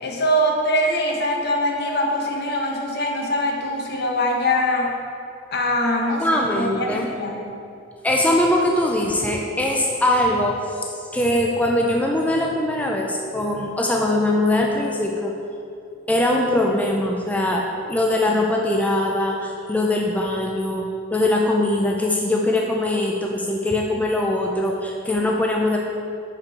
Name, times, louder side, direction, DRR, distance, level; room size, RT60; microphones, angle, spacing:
voice 1, 0.0-5.0 5.5-7.4, left 1 dB, 60° left, 1 dB, 0.9 m, -23 dB
voice 2, 6.2-7.1 8.0-10.8 11.1-15.3 16.1-17.6 17.9-25.8, left 1 dB, 10° left, 0 dB, 0.4 m, -21 dB
6.1 x 5.5 x 4.0 m, 2.5 s
head